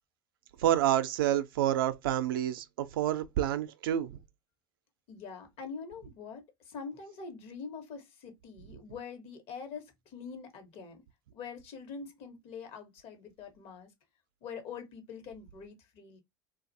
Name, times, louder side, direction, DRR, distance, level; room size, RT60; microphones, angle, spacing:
voice 1, 0.6-4.1, right 12 dB, 80° right, 0.4 m, -28 dB
voice 2, 5.1-11.0 11.3-13.9 14.4-16.2, left 5 dB, 60° left, 1.0 m, -44 dB
2.5 x 2.3 x 2.5 m
hypercardioid pair, 80°, 12 cm